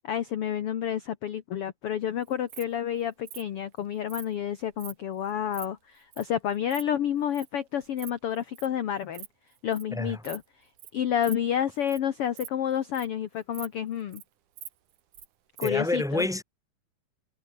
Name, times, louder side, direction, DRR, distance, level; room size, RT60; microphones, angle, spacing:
voice 1, 0.0-9.3 9.6-10.4 10.9-14.2 15.6-16.3, left 9 dB, 65° left, 1.5 m, -29 dB
Insect, 2.2-2.6 3.3-3.4 4.1-4.3 4.7-4.9 5.3-5.7 6.1-6.2 6.5-6.8 7.3-7.5 7.8-8.1 8.4-8.7 9.0-9.3 9.5-9.8 10.2-10.4 10.8-10.9 11.2-11.4 11.7-12.0 12.3-13.2 13.5-13.7 14.0-14.2 14.6-15.3 15.6-15.7, right 11 dB, 60° right, 3.0 m, -43 dB
voice 2, 15.6-16.4, left 2 dB, ahead, 2.5 m, -28 dB
omnidirectional pair, 4.2 m